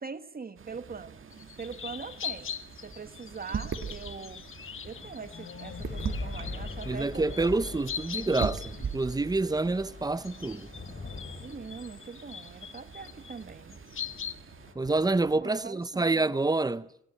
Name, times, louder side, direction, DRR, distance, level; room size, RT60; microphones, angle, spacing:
voice 1, 0.0-2.5 2.8-4.4 4.8-7.4 9.4-9.5 11.4-13.8 15.1-16.2, right 5 dB, 45° right, 1.4 m, -42 dB
sound 1, 0.6-14.7, right 6 dB, 85° right, 1.9 m, -42 dB
sound 2, 1.3-9.8 10.2-14.3, left 7 dB, 80° left, 1.1 m, -42 dB
sound 3, 2.2-15.8, left 3 dB, 55° left, 3.8 m, -44 dB
voice 2, 6.9-10.7 14.8-16.9, right 3 dB, 20° right, 0.8 m, -27 dB
19.0 x 18.5 x 8.8 m
wide cardioid pair, 115°, 21 cm